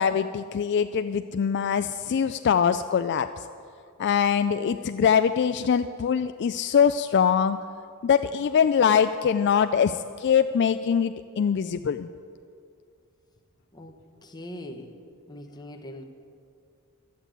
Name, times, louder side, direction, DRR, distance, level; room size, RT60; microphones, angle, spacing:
voice 1, 0.0-3.3 4.0-7.6 8.0-12.1, left 7 dB, 50° left, 10 dB, 0.3 m, -23 dB
voice 2, 13.7-14.9 15.3-16.0, left 1 dB, 20° left, 3 dB, 1.0 m, -41 dB
12.0 x 8.1 x 9.0 m, 2.4 s
head